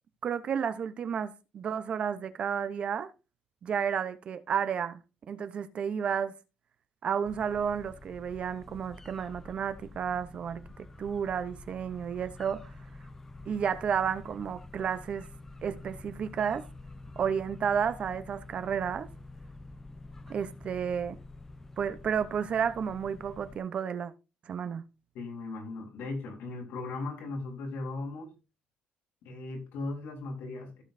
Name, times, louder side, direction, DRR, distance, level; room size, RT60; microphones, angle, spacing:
voice 1, 0.2-3.1 3.6-5.0 5.3-6.3 7.0-12.7 13.5-15.3 15.6-16.7 17.2-19.1 20.3-21.2 21.8-24.1 24.5-24.8, right 7 dB, 35° right, 0.7 m, -32 dB
sound 1, 7.2-23.6, left 2 dB, 10° left, 0.6 m, -48 dB
voice 2, 25.1-28.3 29.2-30.8, left 3 dB, 80° left, 3.7 m, -37 dB
15.5 x 6.2 x 2.6 m
cardioid pair, 170°, 3 cm